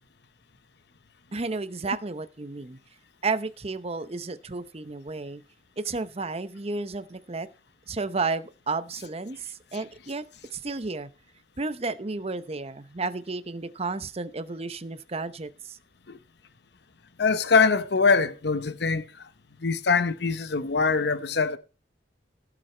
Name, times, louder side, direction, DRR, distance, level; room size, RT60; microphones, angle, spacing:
voice 1, 1.3-2.8 3.2-5.4 5.8-7.5 7.9-11.1 11.6-15.8, right 3 dB, 35° right, 0.8 m, -32 dB
voice 2, 17.2-19.3 19.6-21.6, left 4 dB, 65° left, 0.9 m, -23 dB
16.5 x 6.5 x 4.4 m
head